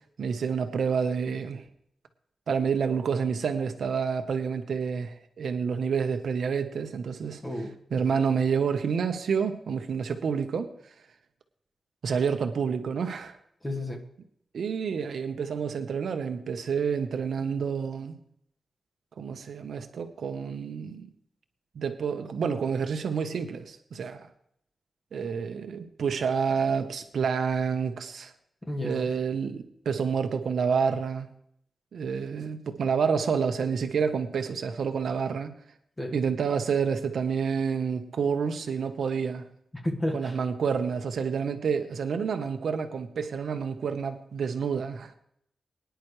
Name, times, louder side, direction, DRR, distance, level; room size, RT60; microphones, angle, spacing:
voice 1, 0.2-1.6 2.5-7.4 7.9-10.7 12.0-13.4 14.5-18.1 19.2-21.1 21.7-24.3 25.1-28.3 28.8-31.3 31.9-35.6 36.1-39.5 40.1-45.2, right 6 dB, 80° right, 7 dB, 1.1 m, -28 dB
voice 2, 13.6-14.0 28.6-29.1 36.0-36.1 39.8-40.3, left 1 dB, 10° left, 1 dB, 1.6 m, -31 dB
22.5 x 10.5 x 3.3 m, 0.73 s
wide cardioid pair, 160°, 0 cm